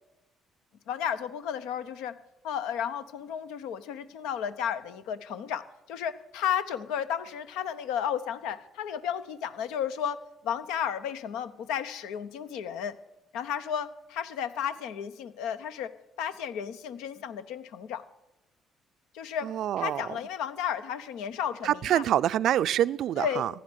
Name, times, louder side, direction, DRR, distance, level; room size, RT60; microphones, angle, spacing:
voice 1, 0.9-2.2 2.4-10.2 10.4-12.9 13.3-15.9 16.2-18.0 19.1-19.5 19.8-22.0 23.2-23.6, left 8 dB, 75° left, 0.8 m, -33 dB
voice 2, 19.4-20.1 21.6-23.5, right 11 dB, 65° right, 0.4 m, -26 dB
15.5 x 10.0 x 6.3 m
hypercardioid pair, 50°, 0 cm